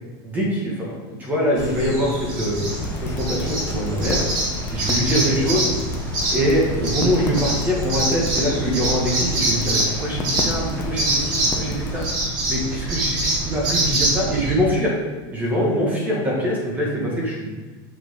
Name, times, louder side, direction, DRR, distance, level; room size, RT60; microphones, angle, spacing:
voice 1, 0.2-4.2 4.7-5.7 6.3-12.0 12.5-14.9 15.3-17.5, equal, 15° right, -3 dB, 1.3 m, -23 dB
sound 1, 1.6-14.5, right 1 dB, 30° right, 1.3 m, -25 dB
sound 2, 2.7-12.1, left 2 dB, 15° left, 0.6 m, -32 dB
6.6 x 5.8 x 3.5 m, 1.3 s
supercardioid pair, 180°, 13 cm